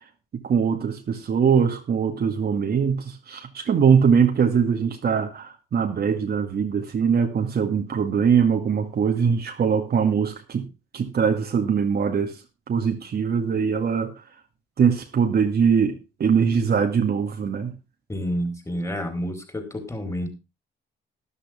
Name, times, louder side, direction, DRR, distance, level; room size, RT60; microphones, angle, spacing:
voice 1, 0.3-10.7 10.9-12.3 12.7-14.1 14.8-17.7, right 6 dB, 50° right, 2.1 m, -22 dB
voice 2, 18.1-20.3, equal, 15° left, 4.1 m, -29 dB
13.0 x 11.5 x 3.6 m
cardioid pair, 90°, 20 cm